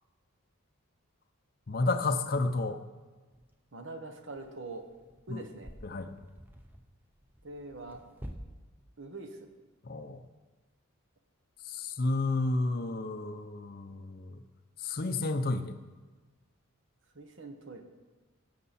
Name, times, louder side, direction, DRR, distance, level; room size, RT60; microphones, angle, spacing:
voice 1, 1.7-2.8 5.3-5.4 5.8-6.1 9.8-10.2 11.6-14.4 14.8-15.7, left 2 dB, 40° left, 6 dB, 0.6 m, -31 dB
sound 1, 3.3-3.5 4.2-8.4, equal, 10° right, 0.6 m, -50 dB
voice 2, 3.7-4.9 5.3-5.7 7.4-8.0 9.0-9.5 17.1-17.8, right 2 dB, 55° right, 6 dB, 1.0 m, -43 dB
16.5 x 6.7 x 4.2 m, 1.3 s
head